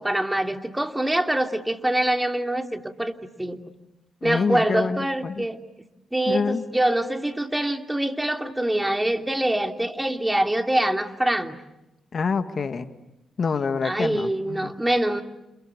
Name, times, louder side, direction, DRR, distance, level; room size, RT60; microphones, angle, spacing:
voice 1, 0.0-3.6 4.2-5.6 6.1-11.6 13.8-15.2, right 1 dB, 10° right, 5 dB, 2.8 m, -24 dB
voice 2, 4.2-5.5 6.3-6.6 12.1-12.9 13.4-14.7, left 5 dB, 50° left, 9 dB, 2.1 m, -26 dB
29.5 x 28.0 x 7.0 m, 0.93 s
hypercardioid pair, 45°, 0 cm